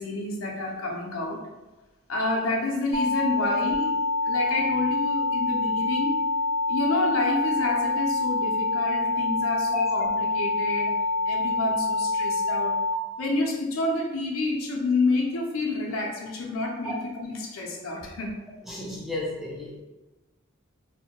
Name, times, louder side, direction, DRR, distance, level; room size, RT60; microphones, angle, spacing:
voice 1, 0.0-1.4 2.1-3.9 4.2-6.2 6.7-11.0 11.3-12.8 13.2-18.4, left 2 dB, 85° left, -1 dB, 0.5 m, -29 dB
sound 1, 2.9-12.9, left 5 dB, 65° right, 0.9 m, -26 dB
voice 2, 18.7-19.8, left 2 dB, ahead, -5 dB, 0.3 m, -32 dB
2.6 x 2.1 x 2.8 m, 1.1 s
head